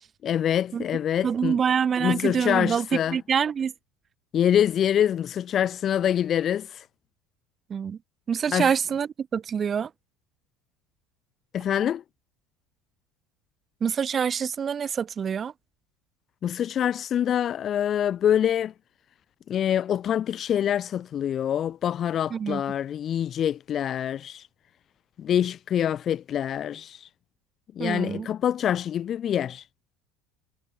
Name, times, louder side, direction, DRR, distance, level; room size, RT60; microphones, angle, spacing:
voice 1, 0.2-1.6 2.0-3.2 4.3-6.8 8.5-8.7 11.5-12.0 16.4-18.7 19.5-24.5 25.2-27.1 27.8-29.6, left 10 dB, 40° left, 1.9 m, -25 dB
voice 2, 1.2-3.7 7.7-8.0 8.3-9.9 13.8-15.5 22.3-22.6 27.8-28.3, right 7 dB, 30° right, 7.3 m, -26 dB
supercardioid pair, 125°, 0 cm